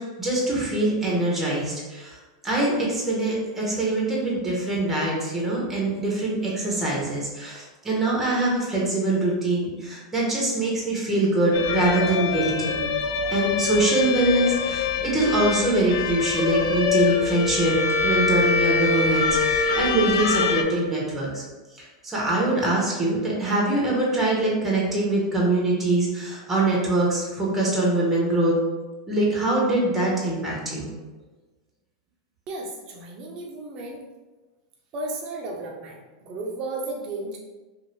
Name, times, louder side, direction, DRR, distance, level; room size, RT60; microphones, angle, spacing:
voice 1, 0.2-2.2 2.4-12.8 13.3-17.8 18.0-21.4 21.8-28.5 29.1-30.9, right 2 dB, 10° right, -4 dB, 1.0 m, -23 dB
sound 1, 11.5-20.6, left 5 dB, 70° left, 0.3 m, -24 dB
voice 2, 32.5-34.0 34.9-37.4, right 2 dB, 40° right, -1 dB, 0.7 m, -34 dB
2.6 x 2.5 x 3.1 m, 1.2 s
hypercardioid pair, 120°, 2 cm